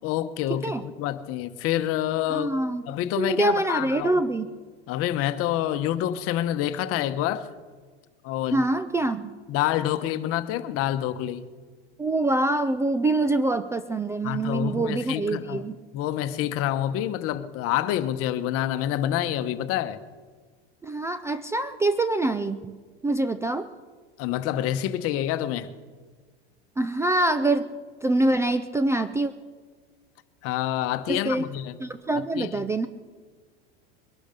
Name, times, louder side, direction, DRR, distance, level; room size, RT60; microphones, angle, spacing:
voice 1, 0.0-2.5 2.9-4.2 4.9-7.5 8.2-8.6 9.5-11.5 14.2-15.6 15.9-20.0 24.2-25.7 30.4-31.8 32.1-32.5, left 12 dB, 50° left, 1.1 m, -27 dB
voice 2, 2.3-2.8 3.2-4.5 8.5-9.4 12.0-15.8 20.8-22.8 23.0-23.7 26.8-27.7 28.0-29.3 31.1-31.4 31.8-32.9, right 2 dB, 10° right, 0.4 m, -25 dB
22.0 x 12.0 x 5.2 m
supercardioid pair, 130°, 30 cm